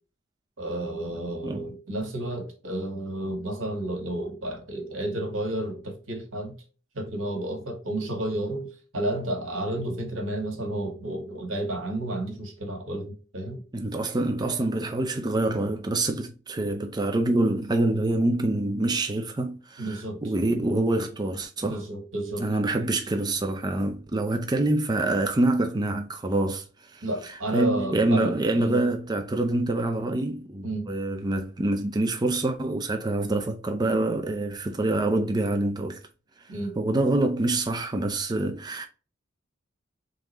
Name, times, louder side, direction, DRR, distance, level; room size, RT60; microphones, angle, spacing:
voice 1, 0.6-6.5 6.9-13.6 19.8-20.2 21.6-22.4 27.0-28.8 30.6-30.9 36.5-36.8, right 1 dB, 85° right, 1.7 m, -31 dB
voice 2, 13.7-21.8 22.4-36.0 36.4-38.9, right 2 dB, 20° right, 0.5 m, -26 dB
3.8 x 3.7 x 3.0 m
head